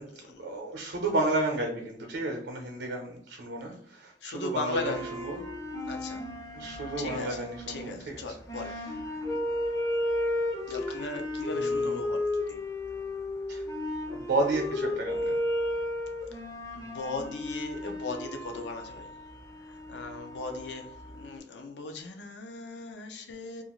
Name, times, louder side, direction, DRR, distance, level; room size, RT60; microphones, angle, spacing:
voice 1, 0.0-5.4 6.5-9.2 10.9-11.1 11.5-12.0 13.5-13.6 14.1-15.4, right 2 dB, 85° right, 0.6 m, -33 dB
voice 2, 4.2-5.1 5.8-6.3 7.0-8.8 10.7-12.6 16.7-19.1 19.7-23.6, left 3 dB, 80° left, 0.5 m, -38 dB
sound 1, 4.7-21.4, left 1 dB, 20° left, 0.4 m, -34 dB
2.5 x 2.4 x 2.9 m
head